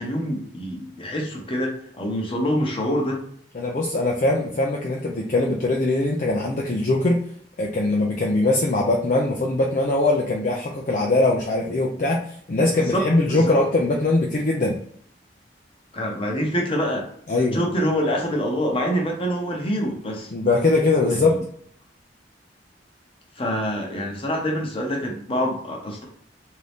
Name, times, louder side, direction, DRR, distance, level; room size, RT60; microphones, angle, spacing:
voice 1, 0.0-3.2 12.5-12.6 12.9-13.6 15.9-17.0 17.3-20.3 21.1-21.4 23.4-26.0, equal, 30° left, 0 dB, 0.9 m, -26 dB
voice 2, 3.5-7.2 7.6-12.2 12.5-14.8 17.3-17.6 20.3-21.4, left 2 dB, 45° left, -1 dB, 0.5 m, -21 dB
3.7 x 2.7 x 3.4 m, 0.65 s
head